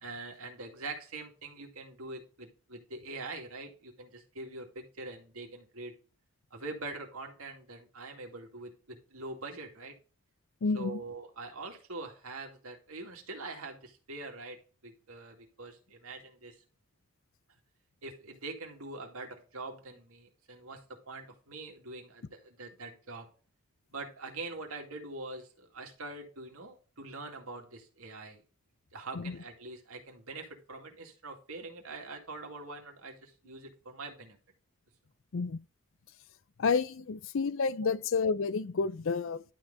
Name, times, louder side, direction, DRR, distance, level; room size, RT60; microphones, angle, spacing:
voice 1, 0.0-5.9 6.5-9.9 10.7-16.6 18.0-20.8 21.1-23.3 23.9-28.4 28.9-34.4 37.8-37.9, right 3 dB, 80° right, 2.2 m, -44 dB
voice 2, 10.6-11.0 29.1-29.4 35.3-35.6 36.6-39.4, left 4 dB, 65° left, 0.5 m, -30 dB
11.5 x 4.2 x 3.8 m
head